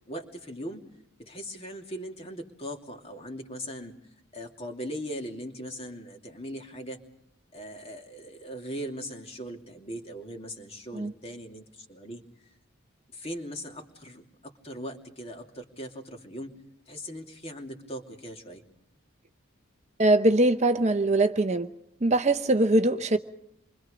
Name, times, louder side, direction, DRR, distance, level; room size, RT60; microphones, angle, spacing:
voice 1, 0.1-0.8 1.2-3.9 4.3-7.0 7.5-12.2 13.1-16.5 16.9-18.6, equal, 30° left, 2.8 m, -39 dB
voice 2, 20.0-21.7 22.0-23.2, right 2 dB, 30° right, 0.8 m, -22 dB
28.0 x 24.5 x 5.1 m
head